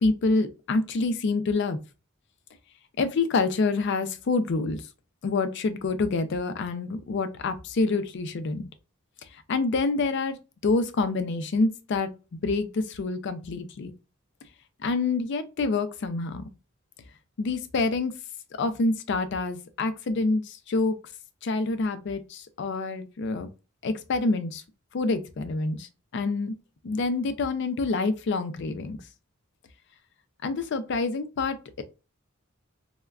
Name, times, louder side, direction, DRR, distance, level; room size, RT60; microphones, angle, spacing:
voice 1, 0.0-1.8 3.0-4.8 5.2-8.7 9.5-10.4 10.6-12.1 12.4-13.9 14.8-16.5 17.4-18.1 18.6-20.4 20.7-21.0 21.4-23.5 23.8-24.6 24.9-25.8 26.1-26.6 26.8-29.0 30.4-31.8, left 3 dB, 60° left, 0.4 m, -27 dB
3.3 x 2.1 x 2.3 m
head